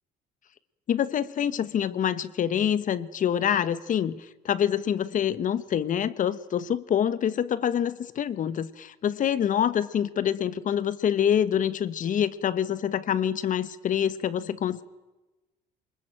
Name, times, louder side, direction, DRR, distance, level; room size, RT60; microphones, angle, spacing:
voice 1, 0.9-14.8, left 9 dB, 50° left, 16 dB, 1.2 m, -26 dB
24.5 x 21.5 x 9.0 m, 1.1 s
cardioid pair, 110°, 17 cm